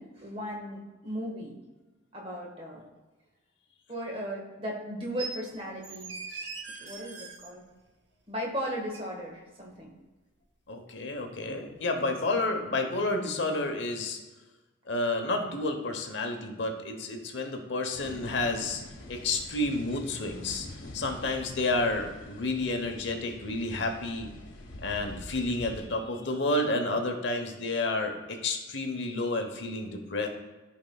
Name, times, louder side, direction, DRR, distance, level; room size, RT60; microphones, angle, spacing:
voice 1, 0.0-1.6 2.1-2.8 3.9-6.1 6.8-7.6 8.3-9.9, equal, 30° right, -1 dB, 1.5 m, -36 dB
sound 1, 5.2-5.4 5.8-7.5 8.9-9.0, right 4 dB, 60° right, 0.9 m, -40 dB
voice 2, 10.7-14.2 14.9-18.8 19.1-24.3 24.8-30.3, left 2 dB, 65° left, 4 dB, 0.9 m, -30 dB
sound 2, 17.9-25.9, left 1 dB, 85° left, 1.2 m, -45 dB
14.0 x 4.7 x 2.3 m, 1.2 s
head